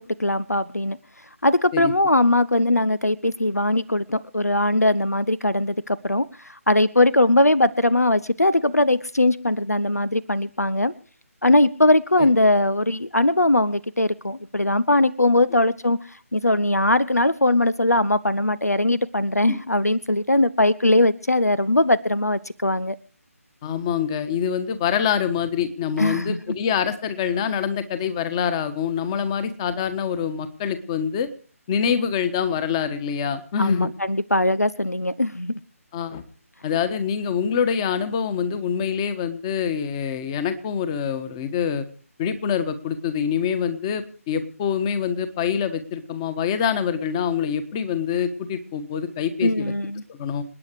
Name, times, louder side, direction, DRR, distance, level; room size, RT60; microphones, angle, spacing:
voice 1, 0.2-1.0 1.4-10.9 11.4-23.0 26.0-26.4 33.6-35.6 49.4-50.0, left 1 dB, 90° left, 19 dB, 0.8 m, -20 dB
voice 2, 23.6-31.3 31.7-33.9 35.9-36.2 36.6-41.8 42.2-49.7 50.1-50.4, left 7 dB, 20° left, 12 dB, 1.5 m, -25 dB
27.5 x 9.7 x 4.8 m, 0.41 s
figure-of-eight pair, 150°, 8 cm